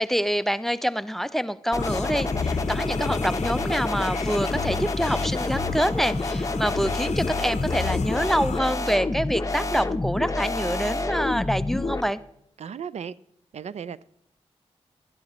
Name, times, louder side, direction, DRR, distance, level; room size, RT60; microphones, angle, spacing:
voice 1, 0.0-12.2, equal, ahead, 0.4 m, -26 dB
sound 1, 1.7-12.0, left 2 dB, 30° left, 0.7 m, -28 dB
sound 2, 1.8-8.6, left 6 dB, 75° left, 0.5 m, -34 dB
voice 2, 12.6-13.1 13.5-14.0, right 7 dB, 70° right, 0.4 m, -35 dB
11.5 x 11.5 x 3.0 m
cardioid pair, 65°, 12 cm